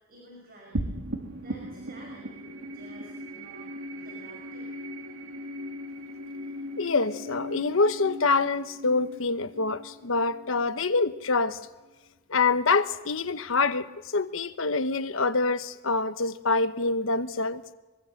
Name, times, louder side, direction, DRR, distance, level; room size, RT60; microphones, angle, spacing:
voice 1, 0.1-0.9 1.4-4.7, right 1 dB, 50° right, 0 dB, 5.8 m, -51 dB
sound 1, 0.7-11.4, equal, 85° right, 2.3 m, -38 dB
voice 2, 6.8-11.6 12.3-13.9 14.1-17.6, left 3 dB, 85° left, 11 dB, 1.1 m, -26 dB
24.0 x 22.5 x 6.7 m, 1.2 s
head